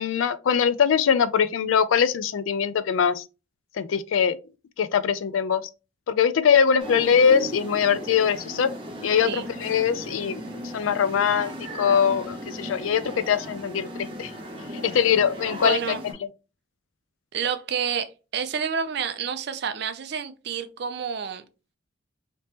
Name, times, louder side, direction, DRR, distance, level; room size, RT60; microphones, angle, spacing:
voice 1, 0.0-3.2 3.7-4.4 4.8-5.6 6.1-8.7 9.0-10.4 10.7-14.3 14.7-15.8, left 7 dB, 85° left, 0.4 m, -22 dB
sound 1, 6.8-16.1, right 1 dB, 25° right, 0.8 m, -37 dB
voice 2, 15.6-16.0 17.3-21.4, right 6 dB, 55° right, 0.4 m, -29 dB
3.3 x 2.9 x 2.9 m
head